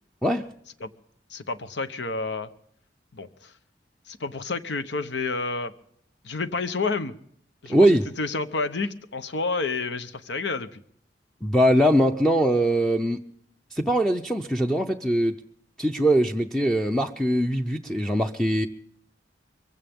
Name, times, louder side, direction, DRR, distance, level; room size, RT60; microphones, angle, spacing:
voice 1, 1.3-2.5 3.1-3.5 4.1-5.7 6.2-7.1 7.6-7.9 8.2-10.8, left 3 dB, 80° left, 11 dB, 0.9 m, -29 dB
voice 2, 7.7-8.0 11.4-13.2 13.7-15.3 15.8-18.7, right 1 dB, 5° left, 5 dB, 0.6 m, -21 dB
22.5 x 16.0 x 3.6 m, 0.66 s
head